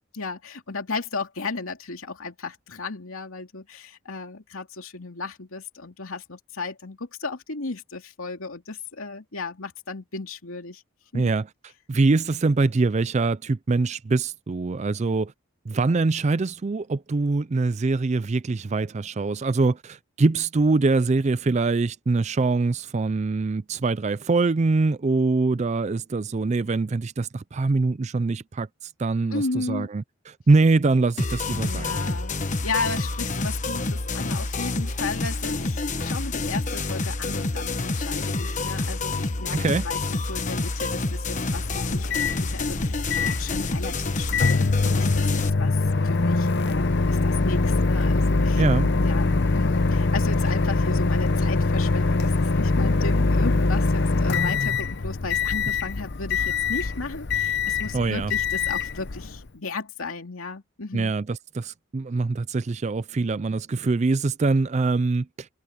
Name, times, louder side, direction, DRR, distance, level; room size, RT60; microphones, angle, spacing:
voice 1, 0.1-10.8 11.1-11.3 29.3-29.9 31.5-44.7 45.0-48.6 49.0-61.1, left 3 dB, 80° left, 2.6 m, -35 dB
voice 2, 11.1-11.5 11.9-15.3 15.7-32.0 39.5-39.8 48.6-48.9 57.9-58.3 60.9-65.5, right 3 dB, 35° right, 0.4 m, -23 dB
sound 1, 31.2-45.5, left 3 dB, 35° left, 1.1 m, -28 dB
Microwave oven, 41.5-59.5, left 3 dB, 55° left, 0.8 m, -23 dB
head